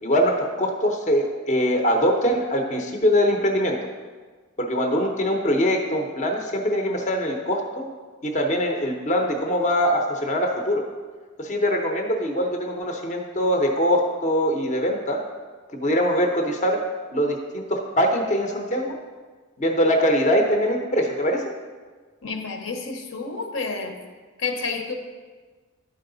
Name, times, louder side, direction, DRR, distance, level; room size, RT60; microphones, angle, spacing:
voice 1, 0.0-3.8 4.6-7.9 8.2-10.8 11.4-15.2 15.7-16.8 17.1-19.0 19.6-21.4, equal, 35° left, 2 dB, 0.7 m, -22 dB
voice 2, 22.2-24.0 24.4-24.9, left 4 dB, 70° left, 4 dB, 0.9 m, -30 dB
11.5 x 4.7 x 3.9 m, 1.4 s
head